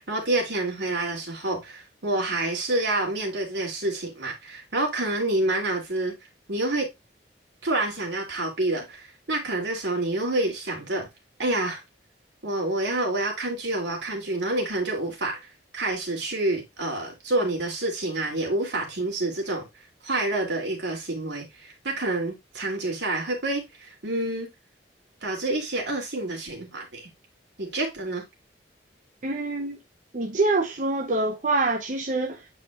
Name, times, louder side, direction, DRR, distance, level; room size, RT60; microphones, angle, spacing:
voice 1, 0.0-6.2 6.5-6.9 7.6-11.1 11.4-11.8 12.4-15.4 15.7-19.7 20.0-24.5 25.2-27.0 27.6-28.2, right 2 dB, 75° right, 2.7 m, -28 dB
voice 2, 29.2-29.8 30.1-32.5, right 2 dB, 45° right, 0.7 m, -25 dB
8.5 x 4.8 x 2.4 m
head